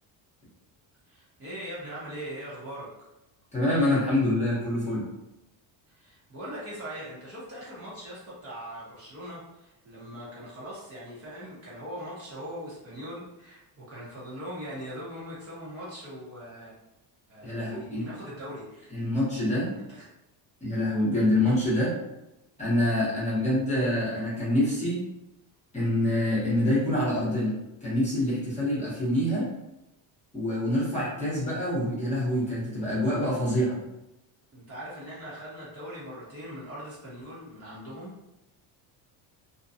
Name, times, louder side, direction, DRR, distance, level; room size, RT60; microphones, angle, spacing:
voice 1, 1.1-2.9 5.9-16.7 17.3-18.9 19.8-20.1 34.5-38.2, equal, 30° right, -8 dB, 0.8 m, -41 dB
voice 2, 3.5-5.0 17.4-18.0 18.9-19.7 20.6-21.9 22.6-25.0 25.7-27.5 27.8-29.5 30.3-33.8, left 1 dB, 15° left, -8 dB, 0.9 m, -26 dB
2.5 x 2.2 x 2.6 m, 0.93 s
cardioid pair, 145°, 46 cm